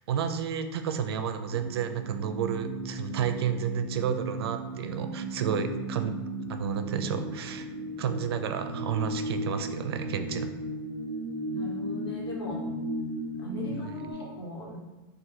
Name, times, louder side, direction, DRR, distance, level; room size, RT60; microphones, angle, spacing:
voice 1, 0.1-6.2 6.5-7.7 8.0-10.5 13.7-13.9, right 7 dB, 80° right, 8 dB, 0.5 m, -31 dB
sound 1, 1.5-14.1, right 1 dB, 30° right, 1.2 m, -36 dB
voice 2, 11.5-12.6 13.4-14.8, left 1 dB, 85° left, -3 dB, 1.4 m, -38 dB
4.1 x 2.6 x 3.8 m, 1.2 s
supercardioid pair, 150°, 13 cm